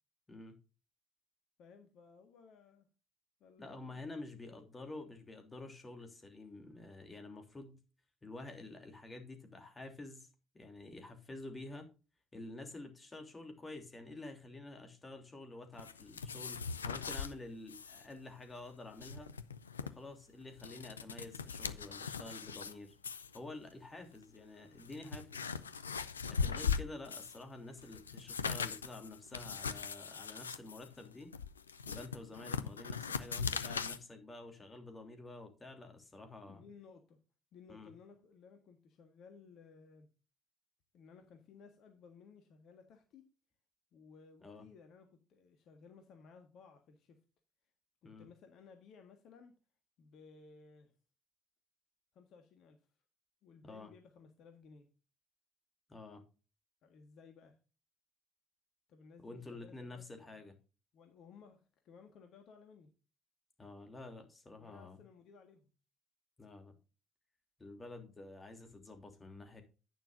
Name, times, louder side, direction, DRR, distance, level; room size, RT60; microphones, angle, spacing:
voice 1, 1.6-2.9 3.4-4.0 4.3-4.7 36.5-37.2 37.5-40.1 40.9-43.3 43.9-47.2 48.0-49.5 50.0-50.9 52.1-52.8 53.4-54.9 56.8-57.6 58.9-60.4 60.9-62.9 64.6-65.7, left 5 dB, 55° left, 5 dB, 1.6 m, -59 dB
voice 2, 3.6-7.8 8.2-11.9 12.3-19.3 19.8-22.9 23.3-25.5 26.3-31.3 31.9-36.6 37.7-37.9 44.4-44.6 48.0-48.3 53.6-53.9 55.9-56.2 59.2-60.5 63.6-65.0 66.4-66.7 67.6-69.6, left 2 dB, 25° left, 5 dB, 3.1 m, -49 dB
sound 1, 15.8-17.3 17.7-18.0 18.3-18.4 18.8-19.9 20.4-22.7 23.0-23.4 24.1-24.2 24.7-27.4 27.8-34.0, left 6 dB, 85° left, 0.5 m, -39 dB
11.0 x 9.4 x 2.6 m, 0.33 s
figure-of-eight pair, 50°, 0 cm